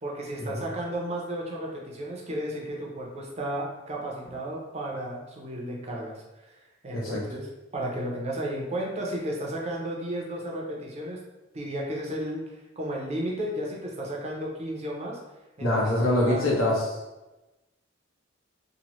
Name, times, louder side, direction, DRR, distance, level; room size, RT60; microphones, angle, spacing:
voice 1, 0.0-7.5 7.7-11.2 11.5-15.2 15.6-15.8 16.1-16.5, right 1 dB, 30° right, -2 dB, 0.5 m, -33 dB
voice 2, 15.6-17.0, left 1 dB, 85° left, -5 dB, 1.0 m, -24 dB
2.9 x 2.1 x 2.9 m, 1.0 s
head